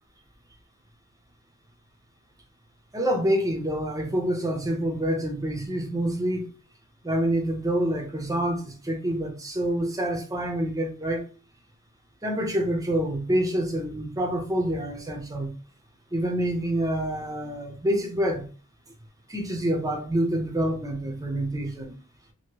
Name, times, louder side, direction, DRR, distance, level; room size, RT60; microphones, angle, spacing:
voice 1, 2.9-6.5 7.0-11.3 12.2-15.6 16.1-18.5 19.3-21.9, right 1 dB, 15° right, 0.6 m, -27 dB
2.9 x 2.7 x 2.9 m
head